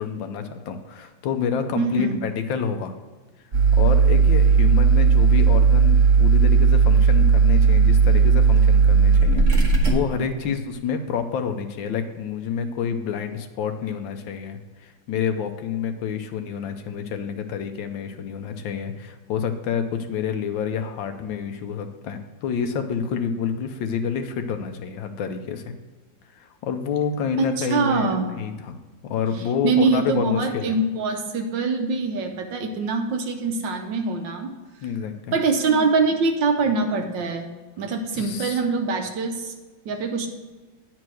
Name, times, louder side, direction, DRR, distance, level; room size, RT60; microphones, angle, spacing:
voice 1, 0.0-2.9 3.7-25.7 26.4-28.8 29.0-30.7 34.8-35.4 38.1-38.6, left 6 dB, 85° left, 7 dB, 1.5 m, -28 dB
voice 2, 1.8-2.2 27.4-28.3 29.6-34.5 35.3-37.5 37.8-39.5 39.8-40.3, right 4 dB, 75° right, 5 dB, 1.5 m, -24 dB
sound 1, 3.5-9.9, right 5 dB, 45° right, 1.3 m, -16 dB
9.7 x 4.6 x 6.2 m, 1.3 s
omnidirectional pair, 2.1 m